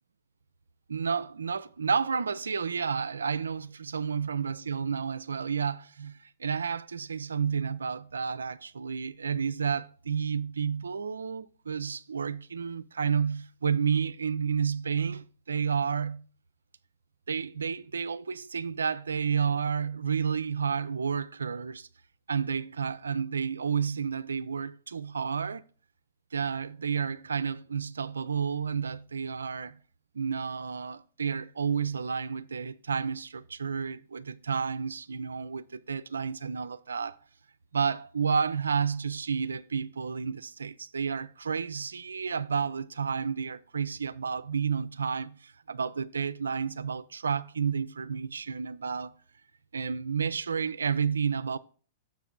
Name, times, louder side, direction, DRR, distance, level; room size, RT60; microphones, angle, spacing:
voice 1, 0.9-16.3 17.3-21.9 22.3-25.6 26.3-29.8 30.1-37.2 37.7-49.1 49.7-51.6, right 6 dB, 80° right, 0.3 m, -31 dB
7.2 x 5.8 x 3.6 m
figure-of-eight pair, 105°, 0 cm